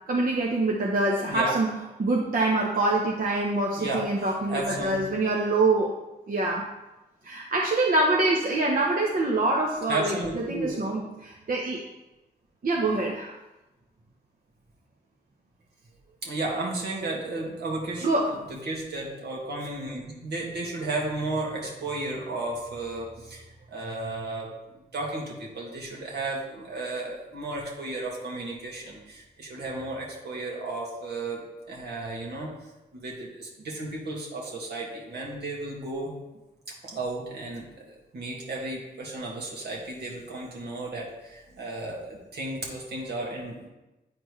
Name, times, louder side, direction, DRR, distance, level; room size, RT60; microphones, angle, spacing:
voice 1, 0.1-1.7 2.0-5.9 6.3-6.6 7.2-11.8 12.6-13.3 18.0-18.2, right 2 dB, 55° right, -2 dB, 1.0 m, -25 dB
voice 2, 3.8-5.0 9.9-10.8 16.2-32.5 32.9-36.2 36.8-43.7, right 2 dB, 75° right, -2 dB, 1.9 m, -34 dB
8.8 x 4.4 x 3.2 m, 1.0 s
supercardioid pair, 50°, 17 cm